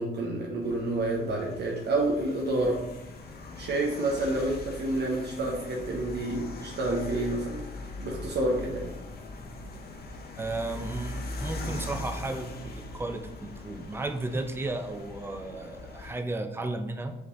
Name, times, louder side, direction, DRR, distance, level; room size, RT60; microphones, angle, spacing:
voice 1, 0.0-2.8 3.6-7.7 8.0-8.9, right 2 dB, 60° right, -1 dB, 0.8 m, -29 dB
sound 1, 0.6-16.1, left 2 dB, 50° left, 0.6 m, -41 dB
voice 2, 10.4-17.2, right 2 dB, 10° right, 6 dB, 0.5 m, -34 dB
4.8 x 3.1 x 3.0 m, 0.97 s
cardioid pair, 90°, 20 cm